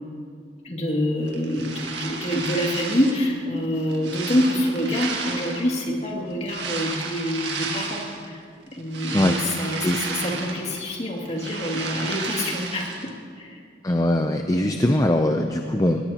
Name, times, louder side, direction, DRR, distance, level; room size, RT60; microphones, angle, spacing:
voice 1, 0.6-8.4 8.7-13.6, left 1 dB, 40° left, -1 dB, 2.4 m, -26 dB
sound 1, 1.3-3.3 3.7-5.8 6.4-8.3 8.7-10.9 11.2-13.1, right 4 dB, 90° right, 1.8 m, -32 dB
voice 2, 13.8-16.0, left 1 dB, 20° left, 4 dB, 0.5 m, -21 dB
21.0 x 18.5 x 2.9 m, 2.2 s
head